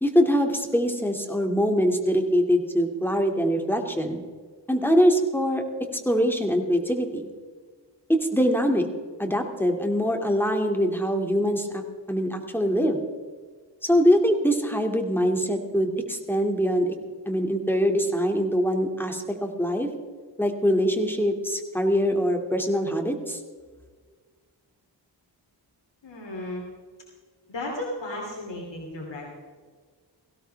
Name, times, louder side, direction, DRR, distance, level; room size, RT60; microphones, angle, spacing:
voice 1, 0.0-4.2 4.7-5.6 6.1-7.3 8.1-8.9 9.2-11.8 12.1-13.0 13.8-17.0 17.3-19.9 20.4-23.4, equal, 5° left, 4 dB, 2.2 m, -23 dB
voice 2, 26.0-26.6 27.5-29.3, left 1 dB, 75° left, -1 dB, 2.9 m, -34 dB
18.0 x 16.5 x 3.4 m, 1.5 s
cardioid pair, 60°, 44 cm